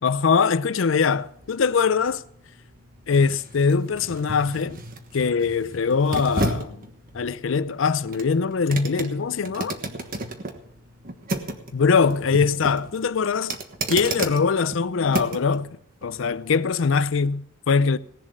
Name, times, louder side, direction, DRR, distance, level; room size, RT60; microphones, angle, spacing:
voice 1, 0.0-2.2 3.1-4.8 5.1-6.8 7.1-9.8 11.7-13.6 13.9-15.8 16.0-18.0, left 5 dB, 70° left, 0.5 m, -22 dB
sound 1, 0.9-15.6 16.0-16.1, right 2 dB, 45° right, 1.3 m, -33 dB
18.0 x 7.2 x 6.4 m
head